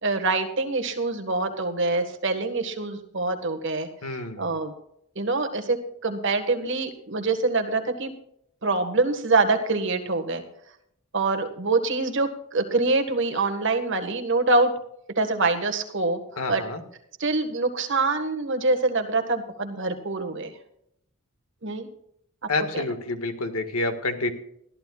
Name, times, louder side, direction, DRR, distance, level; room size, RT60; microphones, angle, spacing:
voice 1, 0.0-3.9 4.4-4.7 5.1-5.8 6.0-8.1 8.6-10.4 11.1-14.7 15.2-16.2 16.5-16.6 17.2-20.5 21.6-21.9 22.7-22.8, right 3 dB, 55° right, 5 dB, 1.6 m, -25 dB
voice 2, 4.0-4.6 16.4-16.8 22.5-24.3, left 2 dB, 80° left, 7 dB, 1.8 m, -28 dB
20.5 x 14.0 x 2.4 m, 0.75 s
head